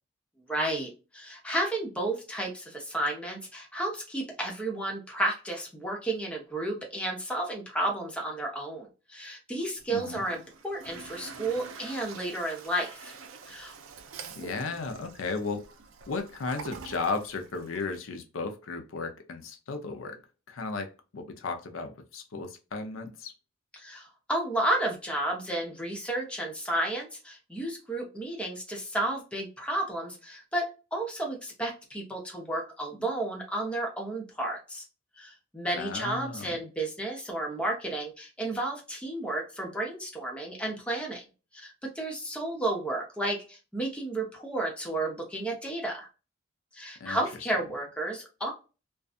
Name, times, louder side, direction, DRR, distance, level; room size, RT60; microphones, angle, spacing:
voice 1, 0.5-13.2 13.5-13.7 23.7-34.8 35.2-41.2 41.5-46.1 46.7-48.5, right 1 dB, 5° left, 0 dB, 0.8 m, -32 dB
Toilet flush, 9.8-18.0, right 5 dB, 75° right, 0.4 m, -46 dB
voice 2, 14.4-15.7 16.1-20.2 20.5-20.9 21.1-23.3 35.7-36.6 47.0-47.2, left 4 dB, 85° left, 6 dB, 0.5 m, -35 dB
2.6 x 2.3 x 2.4 m, 0.31 s
head